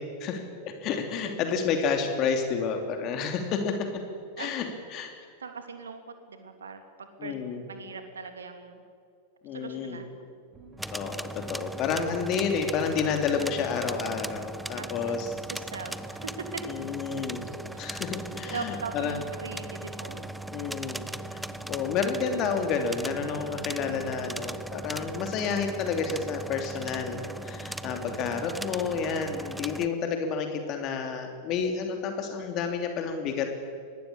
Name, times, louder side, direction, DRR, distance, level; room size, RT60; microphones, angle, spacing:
voice 1, 0.0-4.0 4.4-5.1 7.2-7.6 9.4-10.0 10.9-15.3 16.7-17.4 17.8-19.2 20.5-21.0 21.3-21.4 21.7-33.5, left 6 dB, 35° left, 5 dB, 2.9 m, -30 dB
voice 2, 5.4-7.3 7.7-8.8 9.5-10.3 14.7-15.2 15.5-16.6 17.7-17.9 18.4-20.3 31.5-31.6, right 5 dB, 70° right, 7 dB, 2.9 m, -40 dB
sound 1, 10.5-29.3, right 3 dB, 25° right, 3.8 m, -51 dB
sound 2, 10.8-29.9, right 1 dB, 5° right, 0.8 m, -39 dB
25.0 x 20.5 x 8.7 m, 2.2 s
figure-of-eight pair, 90°, 0 cm